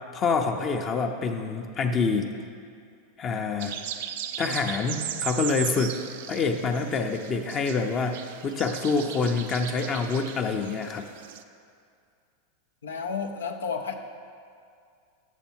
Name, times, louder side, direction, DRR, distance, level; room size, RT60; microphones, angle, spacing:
voice 1, 0.1-2.3 3.2-3.8 4.4-6.0 6.3-11.1, left 4 dB, 35° left, 4 dB, 0.7 m, -26 dB
sound 1, 3.6-11.4, right 9 dB, 65° right, 0.4 m, -37 dB
voice 2, 12.8-14.0, left 5 dB, 80° left, 4 dB, 0.6 m, -31 dB
8.1 x 6.9 x 4.5 m, 2.3 s
hypercardioid pair, 95°, 0 cm